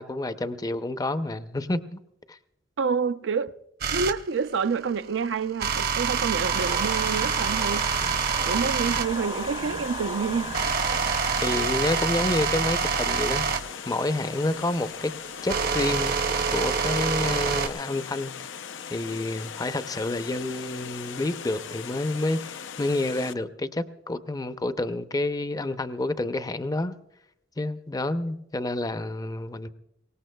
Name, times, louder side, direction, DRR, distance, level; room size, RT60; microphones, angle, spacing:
voice 1, 0.0-2.0 2.3-2.4 11.4-15.1 15.4-16.2 16.5-18.3 18.9-26.9 27.6-29.7, left 2 dB, 20° left, 0.5 m, -29 dB
voice 2, 2.8-3.5 3.9-7.9 8.5-10.5, right 5 dB, 75° right, 0.5 m, -28 dB
sound 1, 3.8-4.2 5.6-9.1 9.7-17.7, right 6 dB, 55° right, 0.8 m, -26 dB
sound 2, 6.4-11.4, right 4 dB, 30° right, 0.6 m, -35 dB
Water, 6.5-23.3, left 7 dB, 90° left, 0.5 m, -39 dB
23.5 x 18.5 x 2.2 m
head